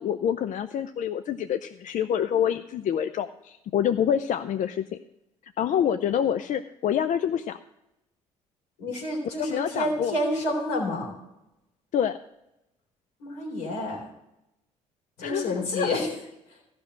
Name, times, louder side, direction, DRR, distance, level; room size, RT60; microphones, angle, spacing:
voice 1, 0.0-4.8 5.6-7.6 9.4-10.2 11.9-12.2 15.2-16.0, left 9 dB, 50° left, 11 dB, 0.5 m, -27 dB
voice 2, 8.8-11.2 13.2-14.1 15.2-16.1, left 1 dB, 75° left, -1 dB, 3.8 m, -29 dB
14.5 x 6.0 x 6.5 m, 0.89 s
hypercardioid pair, 50°, 16 cm